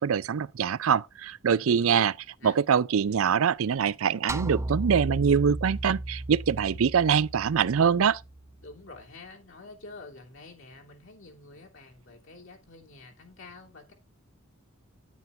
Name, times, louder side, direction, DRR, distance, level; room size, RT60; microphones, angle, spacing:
voice 1, 0.0-2.1 2.4-8.2, right 7 dB, 80° right, 0.4 m, -24 dB
voice 2, 1.6-2.0 2.4-2.6 8.6-13.9, left 3 dB, 65° left, 3.0 m, -47 dB
sound 1, 4.3-8.7, right 2 dB, 15° right, 0.6 m, -35 dB
9.3 x 9.3 x 3.4 m
head